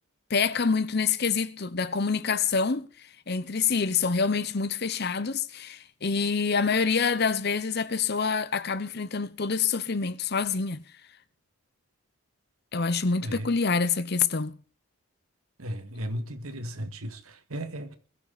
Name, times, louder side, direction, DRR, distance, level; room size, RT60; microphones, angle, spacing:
voice 1, 0.3-10.8 12.7-14.6, left 5 dB, 45° left, 0.8 m, -26 dB
voice 2, 15.6-18.0, equal, 75° right, 1.9 m, -35 dB
21.5 x 15.0 x 4.1 m
head